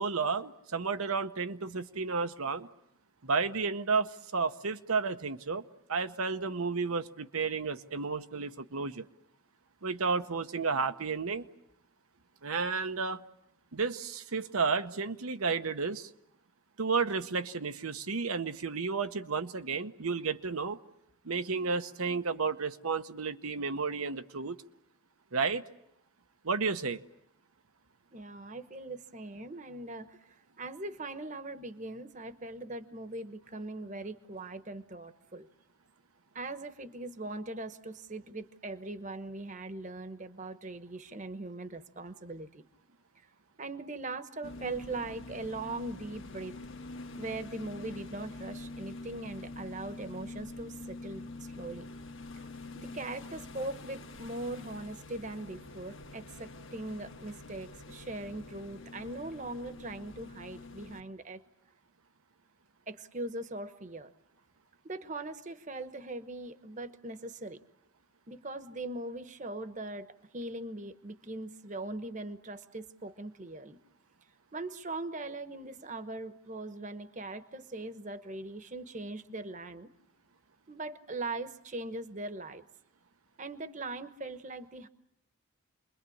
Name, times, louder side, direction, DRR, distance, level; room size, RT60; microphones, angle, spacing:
voice 1, 0.0-2.7 3.2-5.6 5.9-9.0 9.8-11.4 12.4-13.2 13.7-16.1 16.8-20.8 21.2-24.6 25.3-25.6 26.4-27.0, right 4 dB, 80° right, 8 dB, 1.0 m, -32 dB
voice 2, 28.1-30.2 30.6-35.5 36.3-42.6 43.6-46.6 47.2-51.9 52.4-52.5 52.8-61.4 62.9-64.1 64.8-67.6 68.3-73.8 74.5-79.9 80.7-82.6 83.4-84.9, right 2 dB, 35° right, 11 dB, 1.1 m, -40 dB
sound 1, 44.4-61.0, left 2 dB, 60° left, 1.6 m, -46 dB
28.0 x 22.0 x 8.6 m, 0.77 s
head